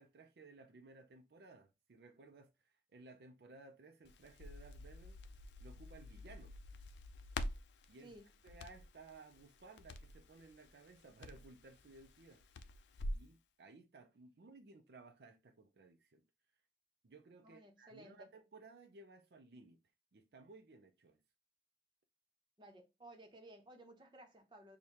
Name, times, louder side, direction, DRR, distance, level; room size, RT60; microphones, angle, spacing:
voice 1, 0.0-5.2 5.6-6.5 7.9-8.1 8.4-12.4 13.1-16.3 17.0-19.8 20.1-21.2, right 3 dB, 65° right, 0.4 m, -59 dB
Crackle, 4.1-13.3, left 1 dB, 85° left, 0.4 m, -48 dB
voice 2, 17.4-18.3 22.6-24.8, right 1 dB, 25° right, 0.8 m, -57 dB
6.2 x 2.2 x 2.8 m
head